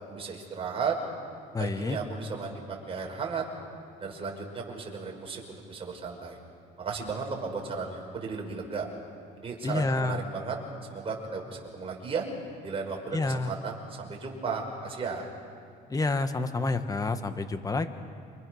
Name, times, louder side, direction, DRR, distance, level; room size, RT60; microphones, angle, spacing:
voice 1, 0.1-1.0 1.6-3.4 4.0-6.4 6.8-8.9 9.4-10.6 10.9-12.2 12.6-15.3, right 5 dB, 35° right, 0 dB, 5.5 m, -35 dB
voice 2, 1.5-2.0 9.6-10.2 13.1-13.5 15.9-17.9, left 3 dB, 20° left, 9 dB, 1.5 m, -28 dB
28.0 x 25.0 x 6.5 m, 2.3 s
cardioid pair, 110°, 17 cm